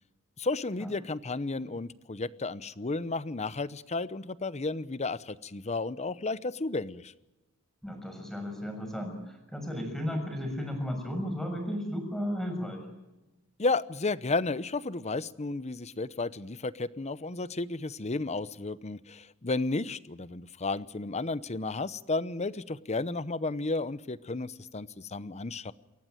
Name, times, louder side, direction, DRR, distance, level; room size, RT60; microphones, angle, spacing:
voice 1, 0.4-7.1 13.6-25.7, left 3 dB, 30° left, 17 dB, 0.8 m, -33 dB
voice 2, 7.8-12.8, equal, ahead, 4 dB, 6.5 m, -34 dB
28.0 x 14.5 x 9.1 m, 1.0 s
head